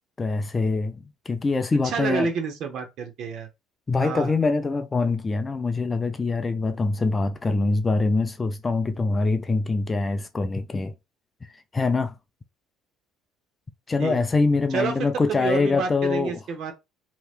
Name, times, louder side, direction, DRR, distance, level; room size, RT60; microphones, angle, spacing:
voice 1, 0.2-2.3 3.9-10.9 11.7-12.1 13.9-16.3, left 3 dB, 20° left, 0.4 m, -24 dB
voice 2, 1.8-3.5 4.0-4.3 14.0-14.2 14.7-16.7, right 5 dB, 55° right, 0.9 m, -29 dB
3.1 x 2.9 x 2.4 m
cardioid pair, 130°, 0 cm